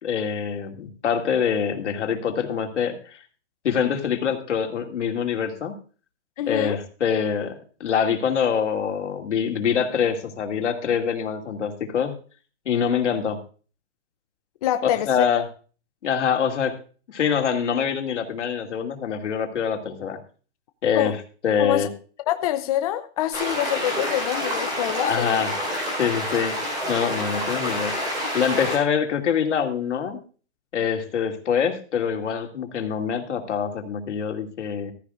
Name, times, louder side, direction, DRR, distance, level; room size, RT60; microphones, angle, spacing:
voice 1, 0.0-3.2 3.6-5.7 6.5-12.1 12.6-13.4 15.0-15.4 16.0-16.8 17.1-20.2 20.8-21.2 21.4-21.9 25.0-25.5 26.0-27.9 28.3-30.2 30.7-34.9, left 7 dB, 90° left, 2.7 m, -25 dB
voice 2, 6.4-6.8 14.6-15.1 15.3-15.4 21.0-21.1 21.6-21.9 22.3-25.4, left 13 dB, 30° left, 0.7 m, -25 dB
sound 1, 23.3-28.8, equal, 10° right, 4.8 m, -28 dB
15.0 x 13.5 x 2.5 m
hypercardioid pair, 165°, 34 cm